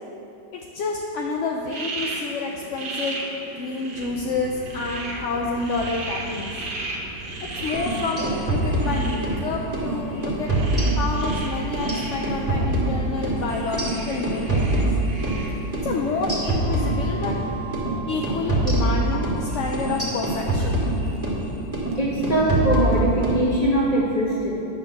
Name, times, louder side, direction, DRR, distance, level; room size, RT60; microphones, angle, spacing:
voice 1, 0.5-3.2 3.5-6.5 7.6-8.2 8.5-10.5 10.9-14.9 15.8-17.3 18.1-20.9, left 3 dB, 60° left, 0 dB, 0.8 m, -29 dB
sound 1, 1.7-17.0, right 2 dB, 85° right, 1.9 m, -36 dB
sound 2, 3.9-23.2, right 2 dB, 70° right, 1.8 m, -38 dB
sound 3, 7.6-9.4 9.7-9.9 10.2-11.4 11.7-15.4 15.7-15.9 16.2-17.4 17.7-17.9 18.2-21.4 21.7-22.0 22.2-23.4, right 2 dB, 10° right, 1.9 m, -24 dB
voice 2, 22.0-24.5, right 1 dB, 20° left, -6 dB, 2.3 m, -22 dB
9.8 x 7.0 x 6.5 m, 2.8 s
omnidirectional pair, 1.8 m